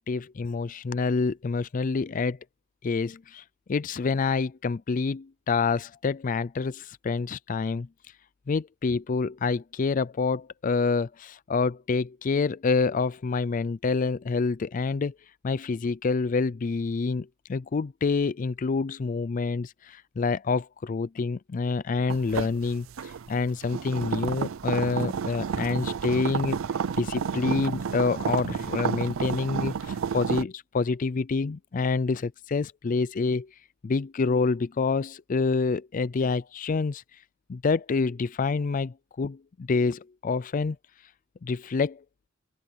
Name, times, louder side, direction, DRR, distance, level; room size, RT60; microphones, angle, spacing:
voice 1, 0.0-2.4 2.8-7.9 8.5-15.1 15.4-26.6 27.0-33.5 33.8-37.0 37.5-40.8 41.4-42.0, left 4 dB, 40° left, 0.4 m, -27 dB
sound 1, 22.1-30.4, right 6 dB, 80° right, 0.5 m, -30 dB
head